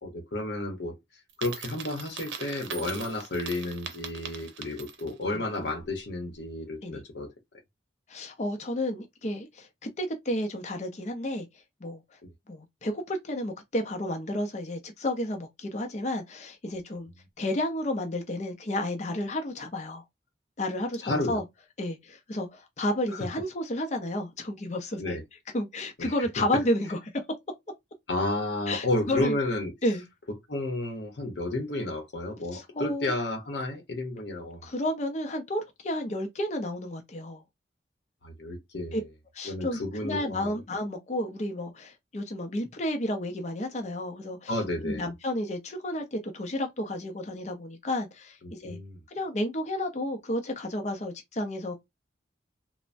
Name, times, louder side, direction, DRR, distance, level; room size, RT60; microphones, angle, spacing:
voice 1, 0.0-1.0 1.4-7.3 21.0-21.4 25.0-25.2 26.0-26.1 26.5-26.6 28.1-29.7 30.5-34.7 38.2-39.0 39.4-40.6 44.5-45.1 48.4-49.0, left 2 dB, 70° left, 0.8 m, -32 dB
Coin (dropping), 1.3-5.2, right 6 dB, 90° right, 0.6 m, -41 dB
voice 2, 8.1-11.5 11.8-12.0 12.5-17.1 17.4-20.0 20.6-21.4 21.8-25.2 25.5-27.0 28.7-29.4 29.8-30.0 32.5-33.1 34.6-37.4 38.9-39.0 39.3-44.5 44.8-48.8 49.1-51.8, left 1 dB, 40° left, 0.5 m, -31 dB
3.1 x 2.1 x 2.5 m
head